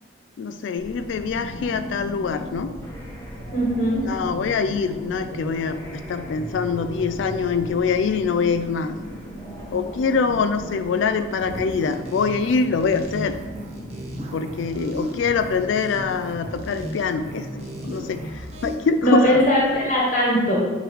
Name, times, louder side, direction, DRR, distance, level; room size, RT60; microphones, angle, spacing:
voice 1, 0.4-2.7 4.0-9.0 9.7-13.4 14.3-19.6, left 5 dB, 65° left, 10 dB, 0.3 m, -24 dB
sound 1, 0.8-20.0, right 1 dB, 15° left, 1.0 m, -38 dB
voice 2, 3.5-4.1 19.0-20.6, equal, 35° left, -4 dB, 1.3 m, -19 dB
sound 2, 11.4-18.8, equal, 30° right, 0.8 m, -36 dB
7.9 x 3.1 x 4.6 m, 1.3 s
head